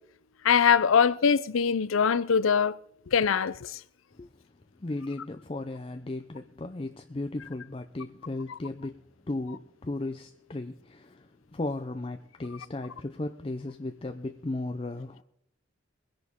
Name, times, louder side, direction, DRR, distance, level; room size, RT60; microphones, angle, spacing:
voice 1, 0.4-2.8 3.1-3.7, left 6 dB, 85° left, 0.5 m, -22 dB
voice 2, 4.8-15.2, left 2 dB, 30° left, 0.5 m, -36 dB
23.0 x 10.5 x 3.6 m
head